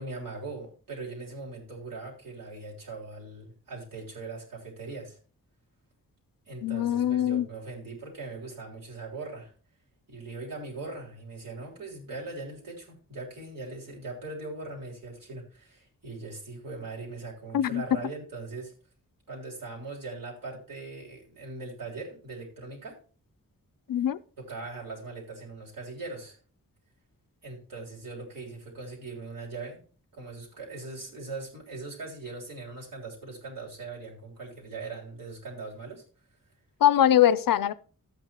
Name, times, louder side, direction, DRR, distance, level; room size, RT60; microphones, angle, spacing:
voice 1, 0.0-5.2 6.5-9.5 10.1-18.7 19.3-23.0 24.4-26.4 27.4-29.8 30.1-36.0, right 3 dB, 80° right, 3.7 m, -40 dB
voice 2, 6.6-7.5 17.5-17.8 23.9-24.2 36.8-37.7, left 11 dB, 90° left, 0.6 m, -22 dB
13.5 x 8.6 x 3.0 m
wide cardioid pair, 140°, 33 cm